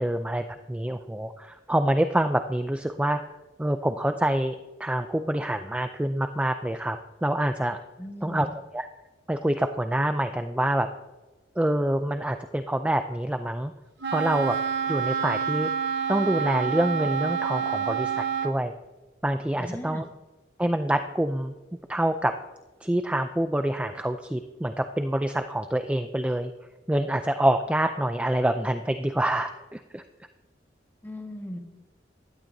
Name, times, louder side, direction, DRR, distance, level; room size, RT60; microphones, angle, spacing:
voice 1, 0.0-3.2 3.6-7.8 8.2-8.5 8.7-8.9 9.3-10.9 11.6-13.7 14.1-14.6 14.9-15.7 16.1-18.7 19.2-20.1 20.6-21.5 21.9-22.3 22.8-26.5 26.9-30.0, right 1 dB, 5° right, 7 dB, 0.4 m, -26 dB
voice 2, 8.0-8.5 19.6-20.0 31.0-31.6, left 1 dB, 10° left, 3 dB, 1.3 m, -37 dB
Wind instrument woodwind instrument, 14.0-18.6, right 7 dB, 80° right, 1.0 m, -28 dB
16.0 x 11.5 x 2.7 m, 1.2 s
head